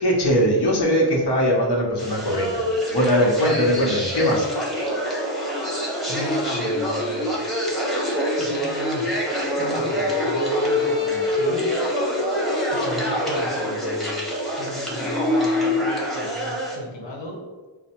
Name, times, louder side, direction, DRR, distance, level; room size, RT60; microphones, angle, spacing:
voice 1, 0.0-4.5, equal, 60° left, -2 dB, 1.2 m, -21 dB
sound 1, 2.0-16.8, left 1 dB, ahead, 0.9 m, -25 dB
voice 2, 3.4-3.7 6.1-7.5 8.4-9.0 9.6-11.6 12.7-17.4, left 1 dB, 90° left, 0 dB, 1.0 m, -36 dB
5.0 x 2.1 x 4.3 m, 1.3 s
wide cardioid pair, 115°, 44 cm